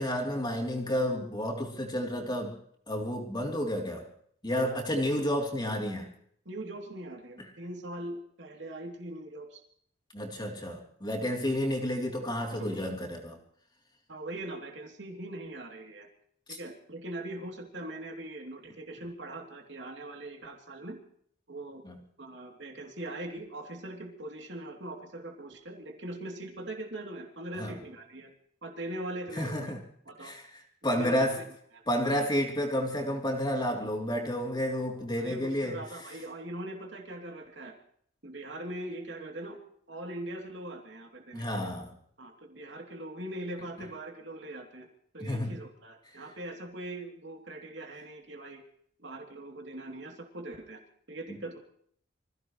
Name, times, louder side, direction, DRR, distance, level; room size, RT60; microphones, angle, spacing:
voice 1, 0.0-2.6 2.9-4.1 4.4-6.1 10.1-13.4 16.5-16.6 21.8-22.0 27.6-27.8 29.3-29.8 30.2-31.4 31.9-35.8 41.3-41.9 45.2-45.6 46.1-46.2 51.3-51.4, equal, 20° left, 0 dB, 3.2 m, -31 dB
voice 2, 6.4-9.6 11.3-11.4 12.5-12.8 14.1-16.1 16.5-21.0 21.5-21.8 22.2-28.3 28.6-29.8 30.1-30.3 30.9-31.4 31.7-32.3 35.2-37.8 38.2-39.6 39.9-41.7 42.2-44.9 45.1-48.6 49.0-50.8 51.1-51.6, right 1 dB, 65° right, 2 dB, 3.1 m, -41 dB
26.5 x 16.0 x 3.2 m, 0.65 s
head